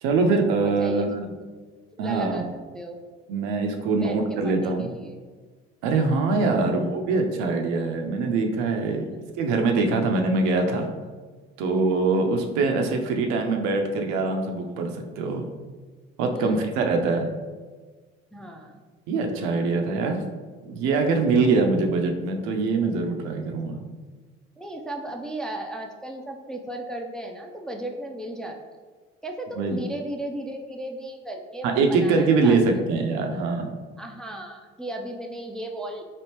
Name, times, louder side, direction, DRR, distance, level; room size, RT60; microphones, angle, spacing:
voice 1, 0.0-1.3 2.0-2.5 3.3-4.9 5.8-9.1 9.4-10.9 11.6-15.5 16.2-17.3 19.1-20.2 20.6-23.9 29.6-29.8 31.6-33.7, right 3 dB, 75° right, 4 dB, 0.5 m, -23 dB
voice 2, 0.6-1.2 2.0-3.0 4.0-5.2 8.9-9.2 16.3-16.7 18.3-18.8 24.6-28.6 29.2-32.6 34.0-36.0, right 1 dB, ahead, 2 dB, 0.3 m, -35 dB
3.3 x 2.5 x 2.8 m, 1.4 s
hypercardioid pair, 60°, 29 cm